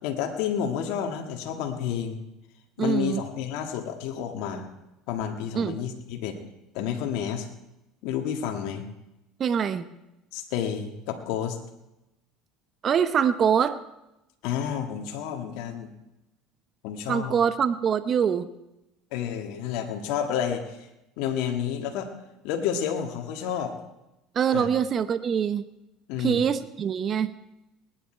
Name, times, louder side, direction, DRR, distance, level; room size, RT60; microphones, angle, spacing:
voice 1, 0.0-2.2 2.8-4.7 5.1-6.4 6.7-7.5 8.0-8.9 10.3-11.6 14.4-15.9 16.8-17.4 19.1-20.9 21.2-22.1 22.4-23.7 24.5-24.7 26.1-26.4, left 8 dB, 75° left, 4 dB, 1.8 m, -30 dB
voice 2, 2.8-3.2 5.5-5.8 9.4-9.9 12.8-13.8 17.1-18.5 24.3-25.7 26.2-27.3, right 7 dB, 40° right, 12 dB, 0.8 m, -24 dB
20.0 x 10.0 x 4.5 m, 0.92 s
supercardioid pair, 95°, 0 cm